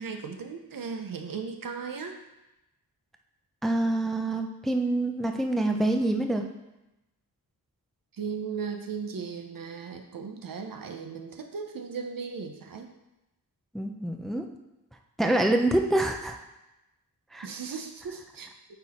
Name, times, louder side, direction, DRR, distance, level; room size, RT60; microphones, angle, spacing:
voice 1, 0.0-2.2 8.2-12.9 17.4-18.5, right 5 dB, 65° right, 5 dB, 0.8 m, -37 dB
voice 2, 3.6-6.4 13.7-14.5 15.2-16.4 17.3-17.5, right 1 dB, ahead, 4 dB, 0.5 m, -26 dB
9.0 x 4.1 x 4.3 m, 0.94 s
wide cardioid pair, 140°, 36 cm